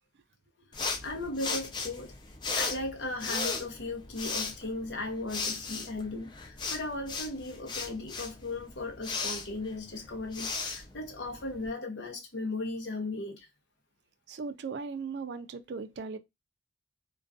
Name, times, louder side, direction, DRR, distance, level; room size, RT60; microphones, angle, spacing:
sound 1, 0.7-11.7, left 4 dB, 25° left, 0.4 m, -36 dB
voice 1, 1.0-2.1 2.5-13.5, left 2 dB, 80° left, 0.7 m, -37 dB
voice 2, 14.3-16.2, right 4 dB, 70° right, 0.4 m, -38 dB
2.4 x 2.2 x 2.3 m
head